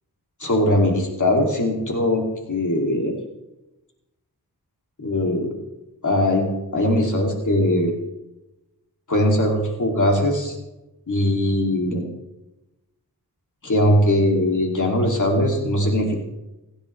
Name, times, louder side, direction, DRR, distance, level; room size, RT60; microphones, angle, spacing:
voice 1, 0.4-2.2 2.5-3.1 5.0-5.5 6.0-6.5 6.7-7.9 9.1-10.6 11.1-12.0 13.6-16.2, left 1 dB, 50° left, 0 dB, 2.7 m, -20 dB
28.0 x 10.0 x 3.3 m, 0.99 s
wide cardioid pair, 100°, 40 cm